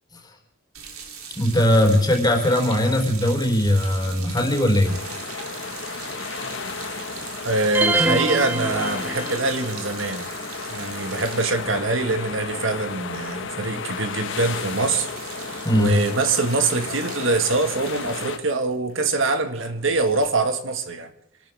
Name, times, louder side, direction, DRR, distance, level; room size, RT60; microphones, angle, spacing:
sound 1, 0.7-13.1 13.4-13.6 13.9-20.3, right 6 dB, 85° right, 3.5 m, -40 dB
voice 1, 1.4-5.0 15.6-15.9, left 1 dB, 20° left, 2 dB, 3.9 m, -19 dB
sound 2, 4.8-18.4, left 4 dB, 60° left, 1.7 m, -33 dB
voice 2, 7.5-10.3 10.7-15.1 15.7-21.1, right 3 dB, 60° right, 7 dB, 1.9 m, -24 dB
sound 3, 7.7-9.6, right 2 dB, 10° right, 0.8 m, -24 dB
27.5 x 13.5 x 3.6 m, 0.78 s
head